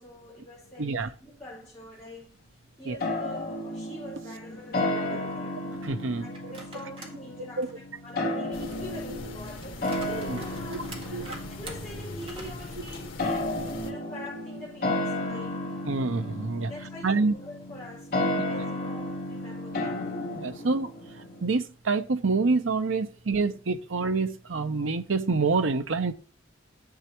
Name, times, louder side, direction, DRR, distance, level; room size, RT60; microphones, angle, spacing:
voice 1, 0.0-2.4 2.8-5.6 6.2-15.8 16.7-20.1, left 1 dB, 5° left, 4.9 m, -44 dB
voice 2, 0.8-1.1 2.9-3.0 5.0-5.1 5.8-6.5 7.6-7.7 10.3-10.4 10.7-10.8 11.1-11.3 15.9-16.7 17.0-17.3 20.3-20.9 21.4-26.1, right 4 dB, 90° right, 0.8 m, -27 dB
sound 1, 3.0-21.5, left 1 dB, 50° left, 2.3 m, -33 dB
sound 2, 6.3-7.2 7.6-13.7 14.1-14.2 15.2-16.6, right 2 dB, 30° right, 1.8 m, -48 dB
sound 3, 8.5-13.9, left 2 dB, 85° left, 1.7 m, -41 dB
11.5 x 7.8 x 3.0 m
head